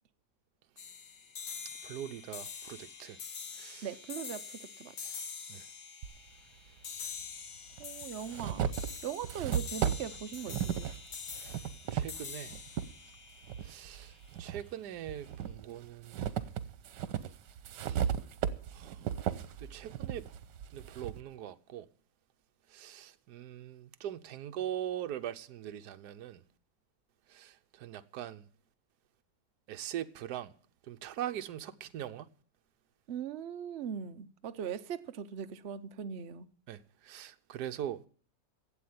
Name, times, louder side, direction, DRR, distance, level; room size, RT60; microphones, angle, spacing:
sound 1, 0.8-14.2, left 6 dB, 50° left, 1.4 m, -45 dB
voice 1, 1.8-3.2 3.5-3.9 5.5-5.7 11.3-12.5 13.6-16.5 17.7-18.1 18.7-19.0 19.6-20.3 20.7-21.9 22.7-26.4 27.3-28.4 29.7-30.5 30.9-32.3 36.7-38.0, right 11 dB, 70° right, 1.3 m, -42 dB
voice 2, 3.8-4.9 7.8-8.7 9.0-10.9 33.1-36.5, right 8 dB, 55° right, 0.8 m, -40 dB
sound 2, 6.0-6.1 7.2-7.3 7.8-12.9 13.4-14.6 15.1-21.2, right 9 dB, 85° right, 1.5 m, -35 dB
12.0 x 8.0 x 9.5 m
omnidirectional pair, 1.8 m